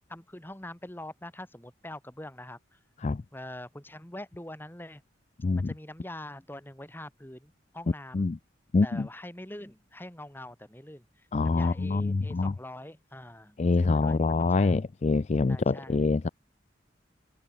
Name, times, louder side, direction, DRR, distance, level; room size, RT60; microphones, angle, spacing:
voice 1, 0.1-2.8 3.3-5.0 5.6-8.3 8.8-14.8 15.5-16.1, left 1 dB, 10° left, 2.3 m, -44 dB
voice 2, 5.4-5.7 8.1-8.4 8.7-9.1 11.3-12.5 13.6-16.3, left 3 dB, 35° left, 0.4 m, -25 dB
head